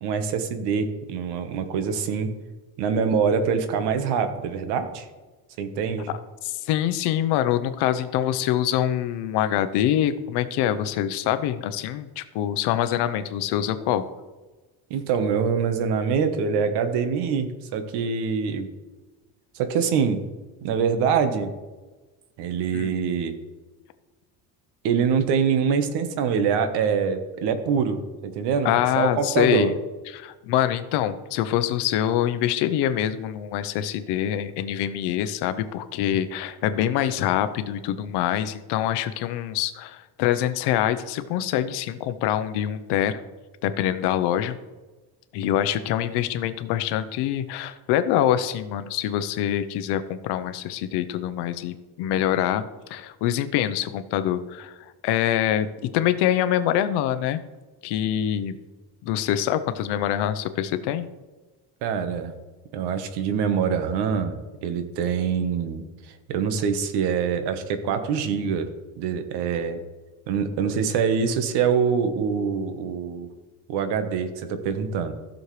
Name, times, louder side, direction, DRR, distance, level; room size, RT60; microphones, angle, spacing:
voice 1, 0.0-2.3 2.8-5.1 5.6-6.1 14.9-18.7 19.5-20.2 20.6-21.5 22.4-23.4 24.8-29.7 61.8-62.3 62.7-68.7 69.0-69.8 70.3-73.3 73.7-75.1, right 6 dB, 80° right, 8 dB, 1.3 m, -24 dB
voice 2, 6.4-14.1 22.7-22.9 28.6-29.7 30.1-43.2 43.6-44.6 45.3-57.4 57.8-58.6 59.0-61.0, left 11 dB, 80° left, 11 dB, 0.8 m, -25 dB
15.0 x 6.4 x 3.2 m, 1.2 s
cardioid pair, 160°, 40 cm